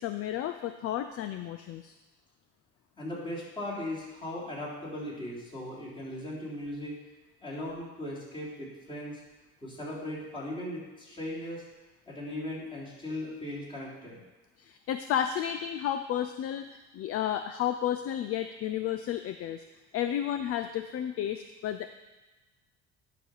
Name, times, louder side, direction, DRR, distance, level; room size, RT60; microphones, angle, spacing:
voice 1, 0.0-1.9 14.6-19.6 19.9-21.9, left 10 dB, 50° left, 9 dB, 0.5 m, -32 dB
voice 2, 3.0-6.9 7.4-9.2 9.6-11.6 12.1-14.2, left 1 dB, 15° left, -7 dB, 3.5 m, -38 dB
10.5 x 4.2 x 6.5 m, 1.2 s
cardioid pair, 125°, 30 cm